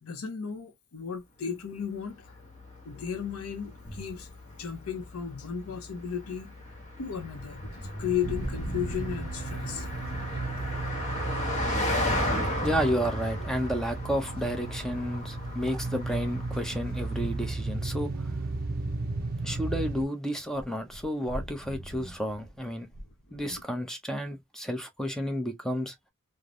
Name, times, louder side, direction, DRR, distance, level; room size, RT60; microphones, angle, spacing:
voice 1, 0.0-2.4 2.8-4.3 4.6-6.5 7.0-7.7 8.0-9.9, left 7 dB, 90° left, 0.6 m, -34 dB
Car passing by, 1.8-17.5, left 1 dB, 35° left, 1.0 m, -37 dB
sound 1, 3.8-4.3 4.9-5.6 5.9-14.4 14.7-20.0 20.3-23.6, equal, 55° left, 0.8 m, -44 dB
sound 2, 8.2-20.1, right 2 dB, 45° right, 0.5 m, -34 dB
voice 2, 12.6-18.4 19.4-22.9 23.3-25.9, equal, ahead, 0.5 m, -31 dB
3.1 x 2.0 x 2.4 m
head